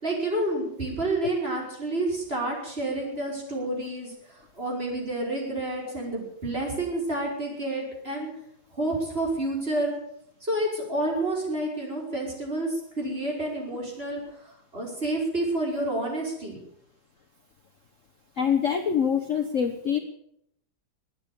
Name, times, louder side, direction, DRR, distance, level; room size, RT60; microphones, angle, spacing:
voice 1, 0.0-4.1 4.5-8.3 8.7-9.9 10.4-14.2 14.7-16.6, right 1 dB, 30° right, -2 dB, 5.6 m, -29 dB
voice 2, 18.4-20.0, left 7 dB, 45° left, 5 dB, 1.3 m, -24 dB
21.5 x 9.4 x 6.9 m, 0.73 s
omnidirectional pair, 2.1 m